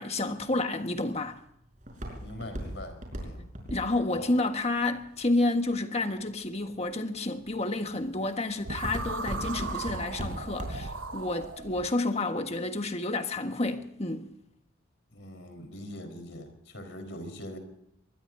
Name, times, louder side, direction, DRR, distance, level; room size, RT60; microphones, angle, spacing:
voice 1, 0.0-1.4 3.7-14.3, left 2 dB, 30° left, 1.5 m, -30 dB
Walk footsteps, 0.7-5.9 6.5-6.9 7.4-7.8 8.1-11.0 11.3-11.4, equal, 40° right, 5.2 m, -38 dB
voice 2, 2.1-3.5 4.0-4.4 15.1-17.6, left 1 dB, 65° left, 4.4 m, -42 dB
sound 1, 8.6-11.9, right 3 dB, 75° right, 1.1 m, -37 dB
23.5 x 20.5 x 2.7 m
head